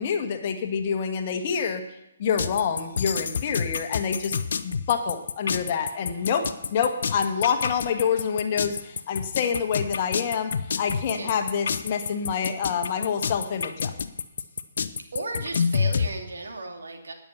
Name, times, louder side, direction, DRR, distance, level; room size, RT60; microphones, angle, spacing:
voice 1, 0.0-4.4 4.6-13.9, left 7 dB, 35° left, 6 dB, 1.4 m, -27 dB
sound 1, 2.4-16.1, left 6 dB, 55° left, 0.7 m, -28 dB
voice 2, 15.1-17.1, right 2 dB, 60° right, 3 dB, 2.5 m, -35 dB
19.5 x 7.1 x 5.9 m, 0.85 s
figure-of-eight pair, 130°, 0 cm